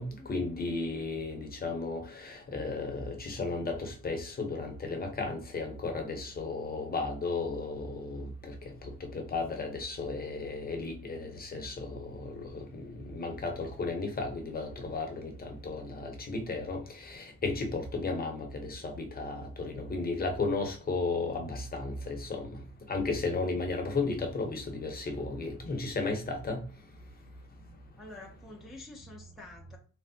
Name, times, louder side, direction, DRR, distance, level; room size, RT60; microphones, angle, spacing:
voice 1, 0.3-8.5 8.8-12.9 13.1-22.4 22.9-26.6, left 3 dB, 30° left, 0.7 m, -34 dB
voice 2, 28.0-29.8, left 2 dB, ahead, 0.5 m, -48 dB
3.1 x 2.5 x 2.6 m
cardioid pair, 120°, 30 cm